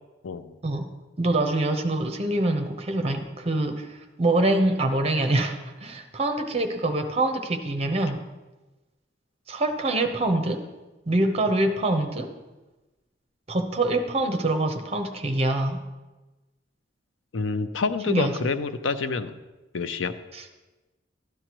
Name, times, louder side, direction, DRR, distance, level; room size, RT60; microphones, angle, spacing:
voice 1, 0.2-0.5 17.3-19.3 19.7-20.1, left 4 dB, 80° left, 11 dB, 0.6 m, -27 dB
voice 2, 1.2-3.9 4.2-8.2 9.5-10.6 11.1-12.3 13.5-15.8 18.1-18.5, right 2 dB, 35° right, 6 dB, 0.9 m, -25 dB
13.0 x 10.0 x 3.0 m, 1.1 s
head